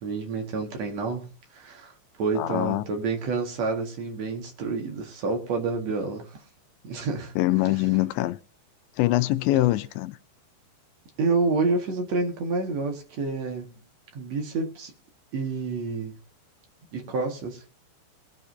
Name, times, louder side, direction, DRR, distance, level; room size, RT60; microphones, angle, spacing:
voice 1, 0.0-6.4 6.8-7.3 11.2-13.7 14.1-14.9 15.3-16.2 16.9-17.8, right 4 dB, 50° right, 2.3 m, -29 dB
voice 2, 2.4-2.8 7.4-8.4 9.0-10.2, left 17 dB, 85° left, 2.9 m, -23 dB
22.0 x 7.4 x 2.7 m
omnidirectional pair, 5.2 m